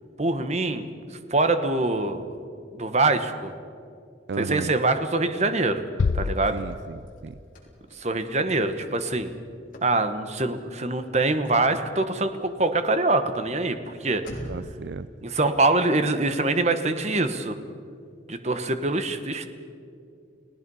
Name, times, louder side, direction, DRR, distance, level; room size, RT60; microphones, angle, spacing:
voice 1, 0.2-0.9 1.3-2.3 2.7-3.5 4.4-5.8 6.1-6.6 8.0-9.3 9.8-14.2 15.2-17.6 18.3-19.5, right 2 dB, 35° right, 9 dB, 1.2 m, -24 dB
voice 2, 4.3-4.8 6.5-7.4 14.5-15.1, right 4 dB, 65° right, 14 dB, 0.4 m, -34 dB
sound 1, 6.0-7.6, left 4 dB, 85° left, 0.5 m, -28 dB
Car / Slam, 6.1-14.8, equal, 45° left, 3.8 m, -47 dB
30.0 x 17.5 x 5.6 m, 2.4 s
head